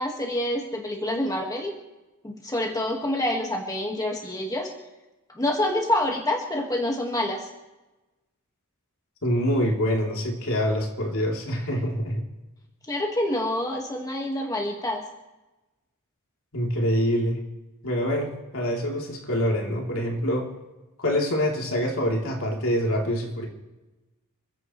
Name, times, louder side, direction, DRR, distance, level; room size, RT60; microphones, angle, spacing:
voice 1, 0.0-1.7 2.2-4.7 5.3-7.5 12.9-15.0, left 1 dB, 15° left, 1 dB, 1.8 m, -27 dB
voice 2, 9.2-12.3 16.5-17.4 17.8-20.5 21.0-23.5, equal, 65° left, -1 dB, 3.4 m, -25 dB
28.5 x 15.0 x 3.2 m, 1.1 s
head